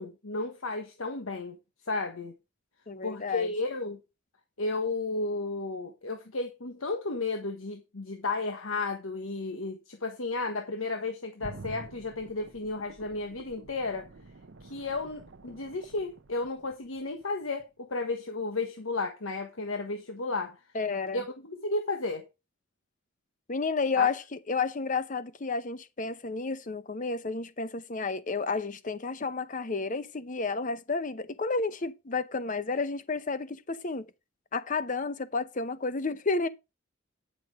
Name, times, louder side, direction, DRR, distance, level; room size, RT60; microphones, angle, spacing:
voice 1, 0.0-1.6 1.9-2.3 3.0-4.0 4.6-14.1 14.6-20.6 21.1-22.2 24.0-24.1, left 3 dB, 90° left, 1.3 m, -33 dB
voice 2, 2.9-3.5 20.7-21.2 23.5-34.1 34.5-36.5, left 4 dB, 40° left, 0.8 m, -31 dB
sound 1, 11.4-17.2 17.6-17.7, right 3 dB, 65° right, 0.8 m, -48 dB
9.5 x 6.1 x 4.8 m
head